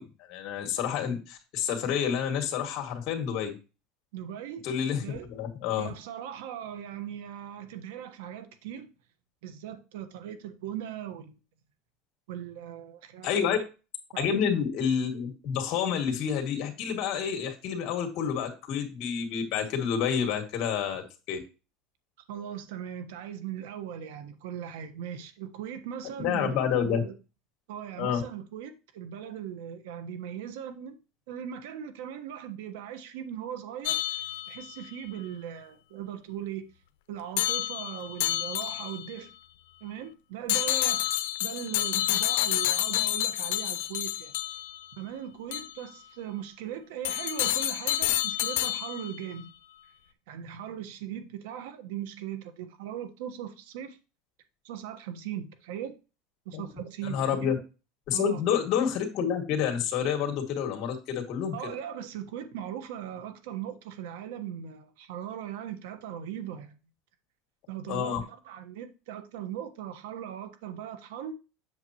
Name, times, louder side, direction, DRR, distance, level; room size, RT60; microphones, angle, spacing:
voice 1, 0.0-3.6 4.6-5.9 13.2-13.6 14.2-21.4 26.2-27.0 28.0-28.2 56.5-56.6 57.0-57.6 58.1-61.7 67.9-68.2, left 8 dB, 55° left, 2.0 m, -29 dB
voice 2, 4.1-4.6 5.0-5.3 5.8-8.9 9.4-11.4 12.3-13.6 14.1-14.6 22.3-26.5 26.8-27.1 27.7-31.0 31.3-36.6 37.1-39.3 39.8-41.0 41.4-44.3 45.0-49.5 50.3-54.0 54.6-55.9 56.4-57.5 58.1-58.4 61.5-66.8 67.7-71.3, right 10 dB, 85° right, 1.2 m, -39 dB
sound 1, 33.9-34.8 37.4-39.1 40.5-44.8 45.5-45.7 47.1-49.2, left 14 dB, 85° left, 0.6 m, -29 dB
7.9 x 6.7 x 3.0 m
supercardioid pair, 130°, 0 cm